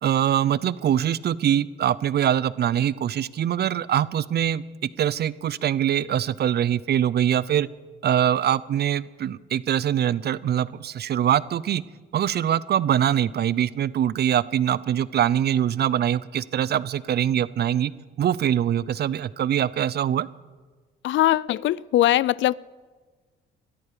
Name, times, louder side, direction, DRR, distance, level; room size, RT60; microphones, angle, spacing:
voice 1, 0.0-4.6 5.0-7.7 8.0-11.8 12.1-17.9 18.2-20.3, right 10 dB, 55° right, 19 dB, 0.6 m, -23 dB
voice 2, 21.0-22.5, left 14 dB, 70° left, 23 dB, 0.4 m, -21 dB
20.5 x 13.5 x 5.1 m, 1.4 s
cardioid pair, 90°, 20 cm